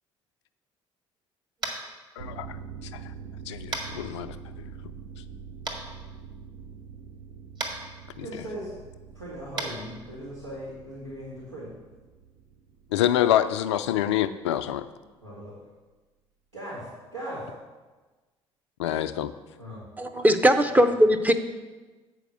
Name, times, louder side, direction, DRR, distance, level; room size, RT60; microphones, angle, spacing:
Tap, 1.6-1.9 3.7-3.9 5.7-5.8 7.6-7.7 9.5-9.7, right 2 dB, 30° right, 1.6 m, -31 dB
voice 1, 2.2-2.6 3.5-4.4 8.2-8.3 12.9-14.9 18.8-19.3, left 11 dB, 70° left, 12 dB, 0.4 m, -26 dB
sound 1, 2.2-14.3 14.6-14.7, right 6 dB, 65° right, 0.6 m, -45 dB
voice 2, 8.2-8.7 9.1-11.7 15.2-15.6 16.5-17.5 19.6-19.8, equal, 85° right, -10 dB, 1.7 m, -38 dB
voice 3, 20.0-21.3, equal, 10° right, 6 dB, 0.7 m, -19 dB
7.8 x 4.7 x 6.6 m, 1.3 s
figure-of-eight pair, 50°, 15 cm